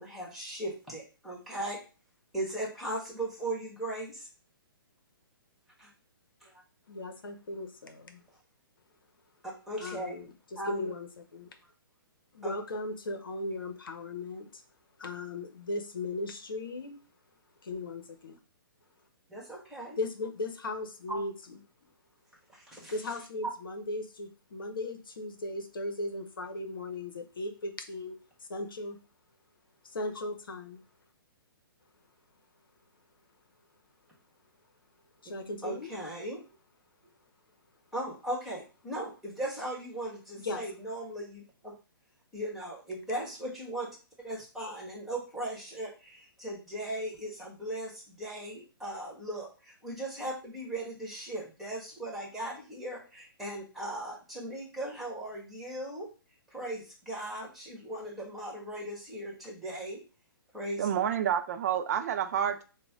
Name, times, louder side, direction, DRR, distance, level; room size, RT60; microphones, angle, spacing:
voice 1, 0.0-1.8 2.3-4.3 5.8-5.9 6.4-6.5 9.4-10.2 10.5-10.9 12.4-12.6 19.3-20.0 21.1-21.6 22.5-23.5 35.2-35.3 35.6-36.4 37.9-41.7 42.3-43.9 44.2-56.1 56.5-60.0 60.5-60.9, right 1 dB, ahead, -3 dB, 1.5 m, -38 dB
voice 2, 6.9-8.2 9.8-11.5 12.3-14.6 15.0-16.9 17.6-18.4 20.0-21.6 22.9-28.2 28.5-29.0 29.8-30.8 35.2-35.9 40.4-40.6, left 2 dB, 65° left, 6 dB, 0.9 m, -37 dB
voice 3, 60.8-62.6, right 9 dB, 45° right, 8 dB, 0.4 m, -29 dB
5.8 x 2.2 x 3.7 m, 0.34 s
figure-of-eight pair, 125°, 12 cm